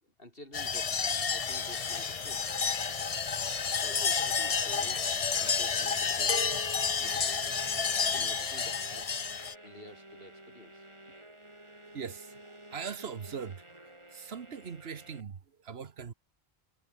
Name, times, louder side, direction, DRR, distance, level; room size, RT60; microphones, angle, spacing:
voice 1, 0.0-2.4 3.7-5.1 5.4-6.4 7.0-7.6 8.1-9.2 9.6-10.9, left 1 dB, 60° left, 6.5 m, -50 dB
sound 1, 0.5-9.5, left 6 dB, 35° left, 0.8 m, -30 dB
sound 2, 1.5-15.2, right 1 dB, 25° right, 4.3 m, -51 dB
voice 2, 11.8-13.8 14.1-16.1, right 6 dB, 70° right, 1.4 m, -41 dB
omnidirectional pair, 1.1 m